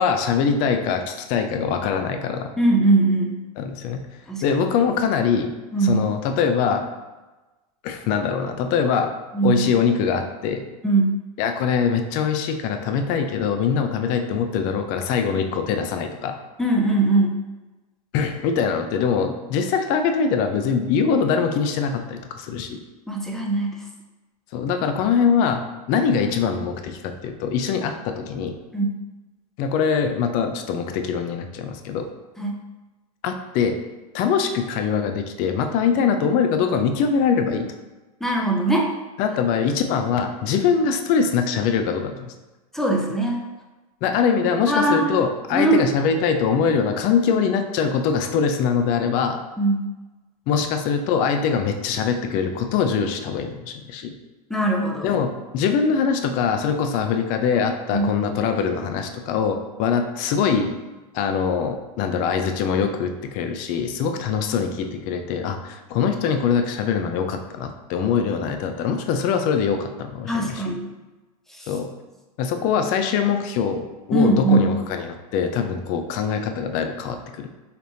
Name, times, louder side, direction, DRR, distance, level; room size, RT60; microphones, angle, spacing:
voice 1, 0.0-2.5 3.6-4.0 4.4-5.5 5.8-6.8 7.8-9.1 9.4-10.6 11.4-16.4 18.1-22.8 24.5-25.6 25.9-28.5 29.6-32.1 33.2-33.8 34.1-37.7 39.2-42.2 44.0-49.4 50.5-54.1 55.0-60.7 61.1-70.8 71.7-71.9 72.4-77.5, left 6 dB, 45° left, 6 dB, 0.5 m, -23 dB
voice 2, 2.6-3.4 4.3-4.6 5.7-6.0 9.3-9.6 10.8-11.2 16.6-17.3 23.1-23.8 28.7-28.9 32.4-32.5 38.2-38.9 42.7-43.4 44.7-45.1 45.5-45.8 49.6-49.9 54.5-55.1 57.9-58.1 70.3-70.9 71.5-71.7 74.1-74.6, right 2 dB, ahead, -1 dB, 0.6 m, -20 dB
4.1 x 3.4 x 2.7 m, 1.1 s
hypercardioid pair, 120°, 20 cm